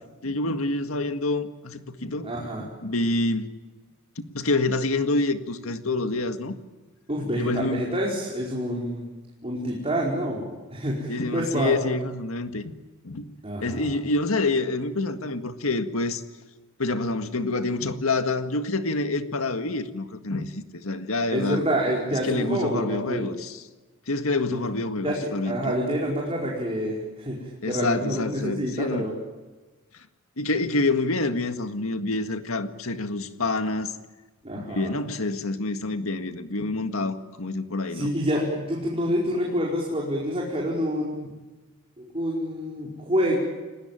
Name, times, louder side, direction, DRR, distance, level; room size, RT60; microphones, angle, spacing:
voice 1, 0.2-2.3 2.6-3.5 4.3-6.5 7.3-7.8 11.1-12.7 13.0-16.2 16.8-21.6 22.2-23.6 24.1-25.5 27.6-29.0 30.4-33.9 34.5-38.1, left 2 dB, 80° left, 1.8 m, -27 dB
voice 2, 2.2-2.7 7.1-9.0 9.4-10.4 10.7-11.8 13.4-14.0 21.3-23.3 24.5-24.6 25.0-29.1 34.4-35.0 37.9-41.3 42.0-43.4, equal, 30° right, 4.9 m, -27 dB
29.5 x 19.5 x 9.1 m
head